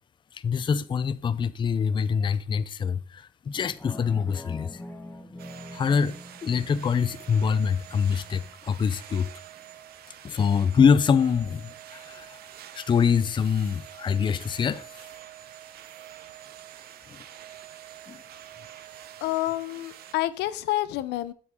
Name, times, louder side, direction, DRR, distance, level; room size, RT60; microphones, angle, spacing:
voice 1, 0.3-4.8 5.7-9.3 10.2-12.4 12.7-14.9 17.1-17.2 18.1-18.2, left 6 dB, 30° left, 0.5 m, -25 dB
sound 1, 3.5-8.6 9.0-9.1, left 1 dB, 10° left, 1.3 m, -44 dB
sound 2, 5.4-20.1, right 11 dB, 65° right, 0.8 m, -46 dB
voice 2, 19.2-21.3, left 16 dB, 85° left, 0.7 m, -28 dB
8.1 x 7.5 x 3.7 m
cardioid pair, 110°, 17 cm